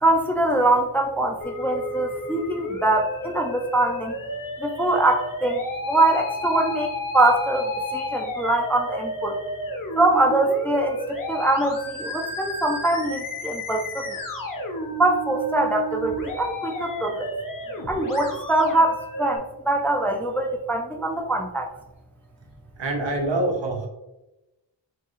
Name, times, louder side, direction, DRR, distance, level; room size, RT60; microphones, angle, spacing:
voice 1, 0.0-4.1 4.6-9.4 9.9-14.2 15.0-17.3 17.9-21.7, right 2 dB, 5° left, 2 dB, 0.4 m, -23 dB
Musical instrument, 1.4-19.4, left 1 dB, 45° left, 0.8 m, -32 dB
voice 2, 22.8-23.9, right 2 dB, 75° right, 1 dB, 0.9 m, -25 dB
4.6 x 2.3 x 3.0 m, 0.96 s
wide cardioid pair, 50°, 44 cm